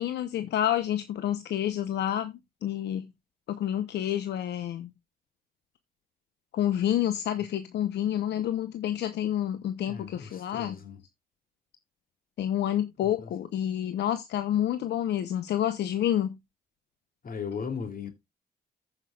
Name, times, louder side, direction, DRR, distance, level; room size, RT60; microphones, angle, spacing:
voice 1, 0.0-2.3 2.6-3.1 3.5-4.9 6.5-10.8 12.4-16.4, left 11 dB, 85° left, 0.9 m, -28 dB
voice 2, 9.8-11.0 13.2-13.3 17.2-18.1, left 6 dB, 55° left, 2.9 m, -37 dB
15.0 x 5.8 x 2.4 m
cardioid pair, 70°, 17 cm